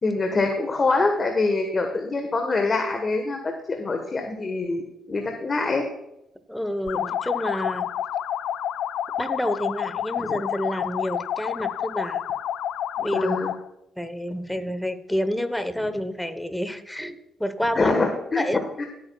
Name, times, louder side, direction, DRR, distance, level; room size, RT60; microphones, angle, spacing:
voice 1, 0.0-3.4 3.7-4.8 5.1-5.8 10.2-10.4 13.1-13.5 17.7-18.4 18.8-18.9, left 3 dB, 35° left, 4 dB, 1.3 m, -24 dB
voice 2, 6.5-7.9 9.2-12.2 13.0-13.4 14.0-17.9 18.4-18.6, equal, 5° left, 11 dB, 1.0 m, -29 dB
sound 1, 6.9-13.7, left 10 dB, 80° left, 0.4 m, -29 dB
17.0 x 8.8 x 2.3 m, 0.85 s
cardioid pair, 90°, 0 cm